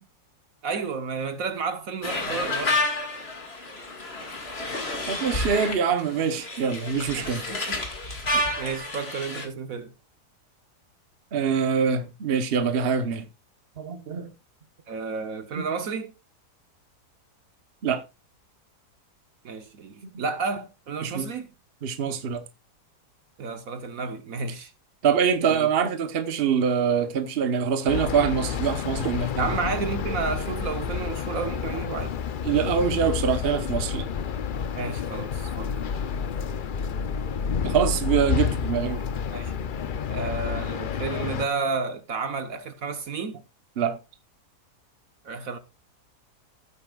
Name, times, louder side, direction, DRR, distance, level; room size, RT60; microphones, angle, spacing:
voice 1, 0.6-2.8 7.2-7.8 8.3-9.9 14.9-16.1 19.4-21.5 23.4-24.7 25.4-25.7 29.4-32.2 34.7-35.7 39.3-39.5 40.1-43.4 45.2-45.6, right 4 dB, 60° right, 1.3 m, -31 dB
sound 1, 2.0-9.5, left 2 dB, 40° left, 2.1 m, -30 dB
voice 2, 5.1-7.4 11.3-13.2 13.8-14.3 15.5-15.6 17.8-18.0 21.0-21.3 21.8-22.4 25.0-29.5 32.4-34.1 37.6-39.0 43.8-44.0, right 7 dB, 40° right, 1.1 m, -24 dB
sound 2, 27.9-41.5, left 7 dB, 80° left, 0.4 m, -29 dB
15.5 x 8.4 x 2.3 m
omnidirectional pair, 1.7 m